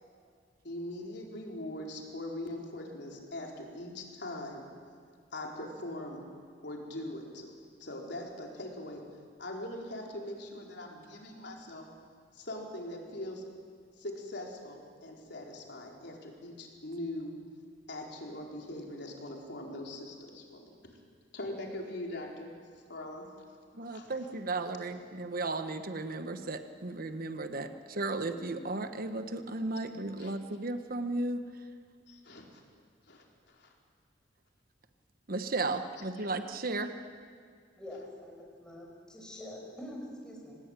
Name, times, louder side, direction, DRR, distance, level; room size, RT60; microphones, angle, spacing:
voice 1, 0.6-4.7 5.3-6.2 6.6-7.5 7.8-9.0 9.4-11.9 12.3-13.4 14.0-17.3 17.9-20.6 20.9-21.0 21.3-22.5 22.9-23.3 23.9-24.1 30.2-30.3 32.1-32.6 33.1-33.7, left 1 dB, 60° left, 0 dB, 4.3 m, -41 dB
voice 2, 23.7-31.4 35.3-36.9, right 2 dB, 50° right, 8 dB, 1.2 m, -35 dB
voice 3, 37.8-40.6, left 1 dB, 5° left, -2 dB, 5.3 m, -45 dB
26.0 x 19.5 x 9.1 m, 2.1 s
head